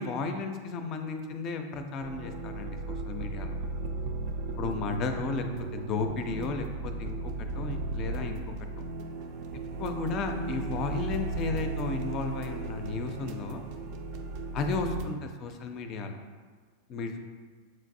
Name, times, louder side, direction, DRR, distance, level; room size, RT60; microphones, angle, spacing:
voice 1, 0.0-3.6 4.6-5.5 5.7-8.4 9.8-13.6 14.5-16.2 16.9-17.2, left 4 dB, 35° left, 6 dB, 0.4 m, -34 dB
sound 1, 2.0-15.1, right 2 dB, 45° right, 0.4 m, -36 dB
7.3 x 2.5 x 2.6 m, 1.5 s
figure-of-eight pair, 90°, 0 cm